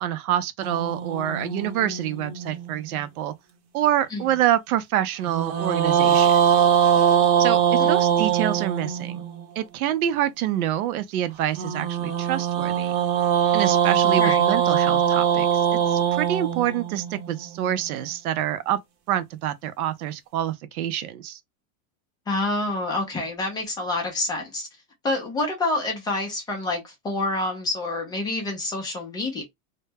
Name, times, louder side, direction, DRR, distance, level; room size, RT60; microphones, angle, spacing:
voice 1, 0.0-3.3 3.7-6.3 7.4-9.2 9.6-12.9 13.5-18.8 19.1-21.4, right 11 dB, 90° right, 0.6 m, -26 dB
sound 1, 0.6-3.0 5.2-9.4 11.5-17.7, right 9 dB, 40° right, 0.8 m, -22 dB
voice 2, 22.3-24.7 25.0-29.4, left 2 dB, 10° left, 0.4 m, -27 dB
2.1 x 2.1 x 3.2 m
supercardioid pair, 155°, 42 cm